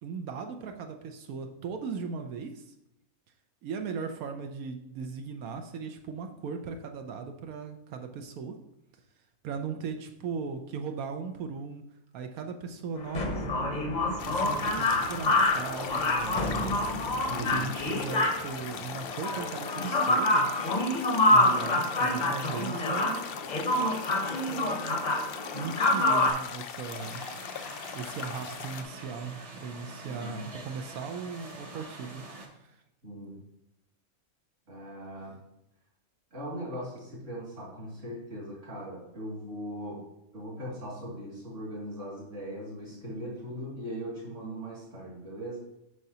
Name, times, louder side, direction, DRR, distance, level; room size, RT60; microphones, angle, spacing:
voice 1, 0.0-2.7 3.6-8.5 9.4-11.8 12.1-13.9 14.3-16.8 17.4-20.5 21.3-23.2 24.2-25.1 25.5-27.2 27.9-32.6, right 5 dB, 80° right, 5 dB, 1.0 m, -38 dB
sound 1, 13.0-26.3, left 2 dB, 40° left, 0.7 m, -27 dB
sound 2, 14.2-28.8, left 7 dB, 75° left, 0.5 m, -40 dB
voice 2, 17.3-17.7 30.0-30.4 33.0-33.4 34.7-35.4 36.3-40.0 40.3-45.6, equal, 60° right, -5 dB, 2.7 m, -39 dB
sound 3, 26.9-32.5, right 2 dB, 30° right, 0.7 m, -45 dB
7.9 x 5.6 x 2.8 m, 0.84 s
omnidirectional pair, 1.5 m